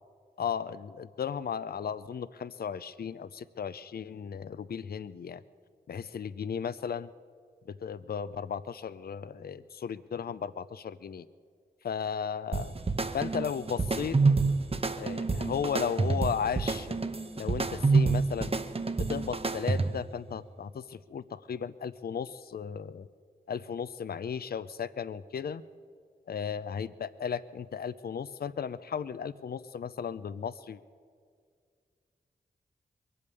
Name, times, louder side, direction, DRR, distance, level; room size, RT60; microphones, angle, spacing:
voice 1, 0.4-5.4 5.9-7.1 7.7-11.3 11.8-12.7 13.1-14.2 15.0-17.0 17.3-18.6 19.0-23.1 23.5-25.6 26.3-30.8, left 7 dB, 65° left, 15 dB, 0.5 m, -35 dB
sound 1, 12.5-20.1, right 3 dB, 35° right, 0.9 m, -28 dB
22.0 x 8.6 x 6.9 m, 2.1 s
cardioid pair, 40°, 17 cm